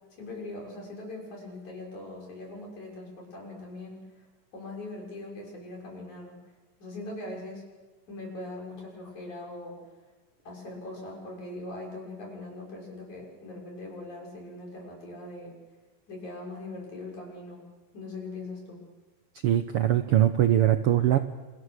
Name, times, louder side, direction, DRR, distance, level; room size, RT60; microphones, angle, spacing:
voice 1, 0.1-4.2 4.5-6.4 6.8-7.7 8.1-9.8 10.4-15.6 16.1-17.6 17.9-18.8, left 2 dB, 60° left, -1 dB, 7.9 m, -41 dB
voice 2, 19.4-21.2, right 12 dB, 90° right, 8 dB, 1.2 m, -22 dB
29.5 x 28.0 x 6.6 m, 1.2 s
omnidirectional pair, 3.9 m